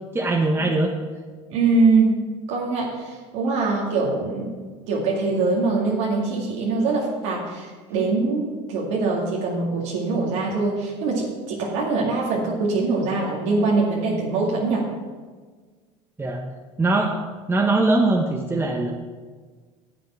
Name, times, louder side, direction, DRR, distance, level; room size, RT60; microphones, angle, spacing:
voice 1, 0.1-0.9 16.2-16.4 16.8-17.2 17.5-18.9, right 2 dB, 15° right, 1 dB, 1.2 m, -21 dB
voice 2, 1.5-2.2 2.5-4.5 4.9-14.8, right 3 dB, 80° right, -4 dB, 2.3 m, -23 dB
10.5 x 7.7 x 6.1 m, 1.5 s
supercardioid pair, 95°, 15 cm